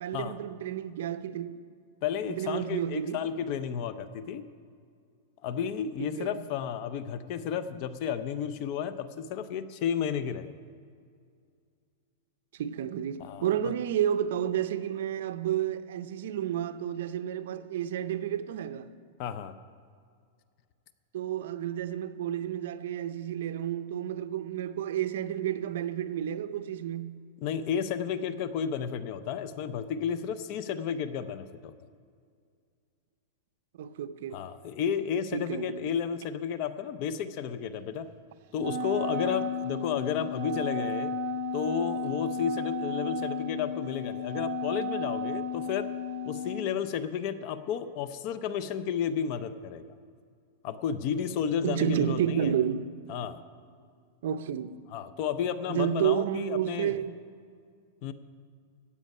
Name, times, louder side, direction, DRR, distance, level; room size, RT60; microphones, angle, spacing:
voice 1, 0.0-1.6 2.3-3.2 6.0-6.4 12.5-18.9 21.1-27.3 33.8-34.4 35.3-35.9 51.6-52.9 54.2-54.7 55.7-57.2, right 10 dB, 70° right, 0.6 m, -31 dB
voice 2, 2.0-4.5 5.4-10.5 13.2-13.4 19.2-19.6 27.4-31.7 34.3-38.1 38.5-41.1 41.5-45.9 46.2-49.9 50.6-52.5 53.1-53.4 54.9-57.0 58.0-58.1, left 8 dB, 40° left, 0.6 m, -32 dB
Wind instrument woodwind instrument, 38.6-46.7, left 2 dB, 40° right, 1.3 m, -33 dB
15.5 x 8.3 x 5.4 m
supercardioid pair, 155°, 0 cm